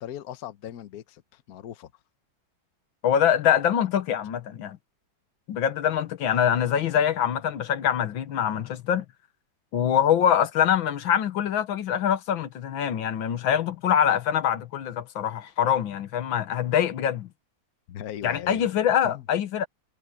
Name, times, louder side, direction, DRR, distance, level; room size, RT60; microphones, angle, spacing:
voice 1, 0.0-1.9 17.9-18.6 19.0-19.2, left 11 dB, 55° left, 1.3 m, -39 dB
voice 2, 3.0-4.8 5.5-9.1 9.7-17.3 18.2-19.7, left 9 dB, 90° left, 1.9 m, -24 dB
omnidirectional pair, 2.1 m